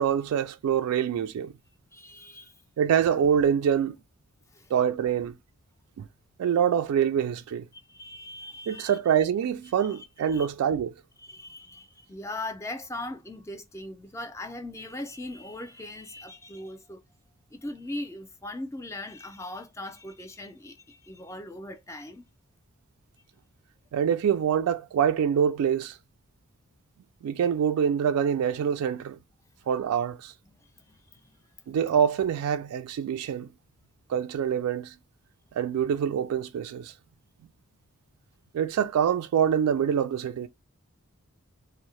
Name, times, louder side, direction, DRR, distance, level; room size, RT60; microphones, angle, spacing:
voice 1, 0.0-1.5 2.8-4.0 4.7-5.4 6.0-6.1 6.4-7.7 8.7-10.9 23.9-26.0 27.2-29.2 29.7-30.3 31.7-33.5 34.1-34.9 35.6-36.9 38.5-40.5, right 8 dB, 85° right, 0.3 m, -25 dB
voice 2, 1.9-2.5 4.5-4.7 7.9-9.0 9.8-10.5 11.2-17.0 17.5-22.2 30.4-31.4, left 1 dB, 15° left, 0.4 m, -40 dB
2.6 x 2.0 x 3.0 m
head